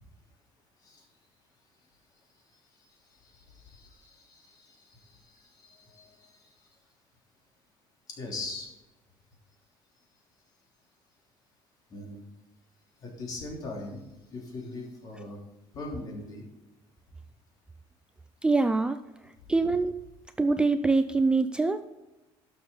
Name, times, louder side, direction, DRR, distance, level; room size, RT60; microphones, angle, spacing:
voice 1, 3.1-6.5 8.2-8.7 11.9-12.2 13.0-14.0 14.3-15.4 15.7-16.4, left 2 dB, 40° left, -1 dB, 3.3 m, -41 dB
voice 2, 18.4-19.0 19.5-20.0 20.4-21.9, right 3 dB, 10° right, 10 dB, 0.3 m, -24 dB
12.0 x 6.8 x 5.5 m, 1.0 s
cardioid pair, 160°, 10 cm